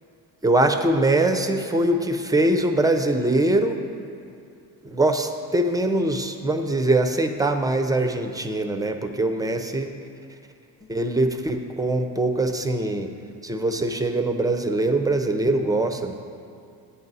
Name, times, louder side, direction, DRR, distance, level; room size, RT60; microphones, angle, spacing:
voice 1, 0.4-3.8 4.8-10.1 10.8-13.1 13.4-16.1, right 2 dB, 10° right, 6 dB, 0.6 m, -22 dB
11.0 x 8.4 x 4.0 m, 2.5 s
cardioid pair, 115°, 42 cm